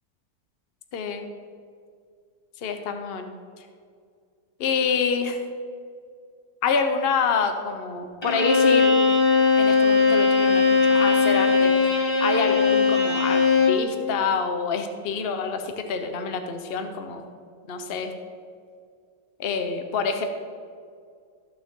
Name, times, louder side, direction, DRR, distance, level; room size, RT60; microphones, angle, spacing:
voice 1, 0.9-1.3 2.6-3.3 4.6-5.4 6.6-8.9 9.6-11.7 12.2-17.3 17.7-18.1 19.4-20.2, left 5 dB, 65° left, 6 dB, 0.5 m, -27 dB
Bowed string instrument, 8.2-13.9, left 4 dB, 25° left, 0.6 m, -19 dB
13.5 x 6.5 x 3.7 m, 2.2 s
omnidirectional pair, 2.2 m